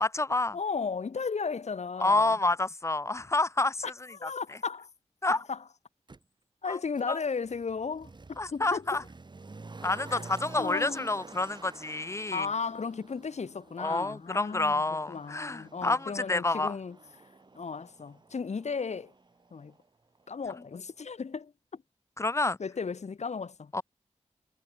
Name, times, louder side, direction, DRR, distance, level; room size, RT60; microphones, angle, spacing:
voice 1, 0.0-0.6 2.0-3.8 4.2-4.3 5.2-5.4 6.7-6.8 7.1-7.2 8.4-9.0 9.8-12.5 13.8-16.8 22.2-22.6 23.7-23.8, left 2 dB, 25° left, 0.4 m, -28 dB
voice 2, 0.5-2.3 3.8-4.9 5.2-5.6 6.6-8.9 10.1-10.2 10.5-11.1 12.3-14.8 15.1-17.0 17.5-19.1 19.5-19.7 20.3-21.8 22.6-23.8, left 5 dB, 70° left, 1.2 m, -35 dB
Motor vehicle (road), 6.1-6.2 6.9-19.9 20.1-20.2, right 3 dB, 40° right, 1.2 m, -50 dB
wide cardioid pair, 85°, 12 cm